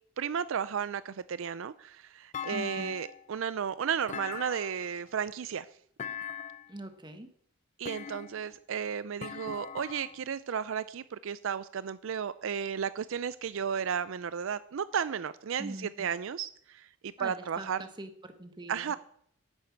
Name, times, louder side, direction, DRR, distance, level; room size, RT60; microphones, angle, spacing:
voice 1, 0.2-5.7 7.8-17.8 18.7-19.0, right 7 dB, 70° right, 15 dB, 0.4 m, -34 dB
Thump thud, 2.3-3.3 4.1-5.0 6.0-6.7 7.8-8.5 9.2-10.2, left 7 dB, 35° left, 0.4 m, -41 dB
voice 2, 2.5-2.9 6.7-7.3 15.6-16.1 17.2-19.0, right 1 dB, 20° right, 8 dB, 1.3 m, -43 dB
11.0 x 7.8 x 8.5 m, 0.66 s
head